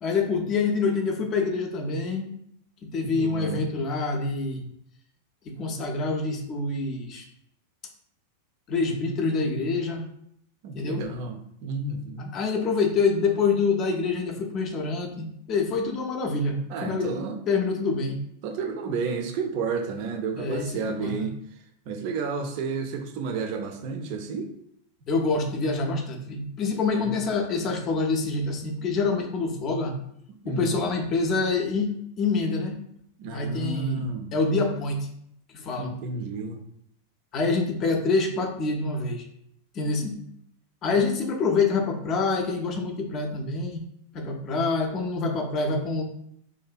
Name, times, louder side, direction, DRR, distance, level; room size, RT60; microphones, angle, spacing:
voice 1, 0.0-2.3 2.8-4.6 5.5-7.2 8.7-10.1 10.7-11.1 12.3-18.2 20.4-21.3 25.1-30.0 30.4-32.8 33.3-34.1 34.3-35.1 35.5-35.9 37.3-39.2 39.7-40.2 40.8-43.8 44.1-46.0, left 4 dB, 35° left, 3 dB, 0.4 m, -26 dB
voice 2, 3.0-3.7 10.6-12.3 16.7-17.4 18.4-21.4 21.9-24.5 26.9-27.2 30.4-30.8 33.2-34.3 35.8-36.6 40.9-41.0, right 4 dB, 45° right, 4 dB, 0.4 m, -31 dB
2.6 x 2.1 x 2.3 m, 0.71 s
figure-of-eight pair, 90°, 0 cm